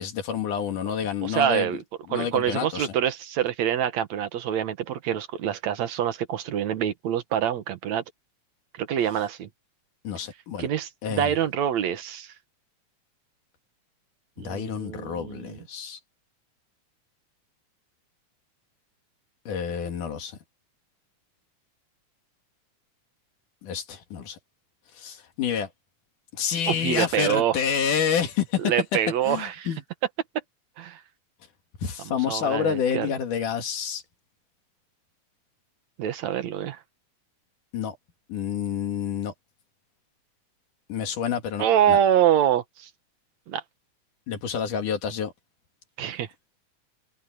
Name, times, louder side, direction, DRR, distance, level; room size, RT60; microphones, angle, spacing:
voice 1, 0.0-1.8 2.1-3.0 10.0-10.7 11.0-11.3 14.4-16.0 19.5-20.4 23.6-24.4 25.0-25.7 26.3-28.7 29.3-29.8 31.8-34.0 37.7-38.0 38.3-39.3 40.9-42.0 44.3-45.3, left 7 dB, 90° left, 3.7 m, -28 dB
voice 2, 1.2-1.8 2.1-8.0 8.8-9.5 10.6-12.3 14.4-15.6 26.7-27.6 28.6-29.7 30.8-31.0 32.1-33.1 36.0-36.8 41.6-42.9 43.5-43.6 46.0-46.3, right 10 dB, 65° right, 2.5 m, -25 dB
omnidirectional pair, 3.5 m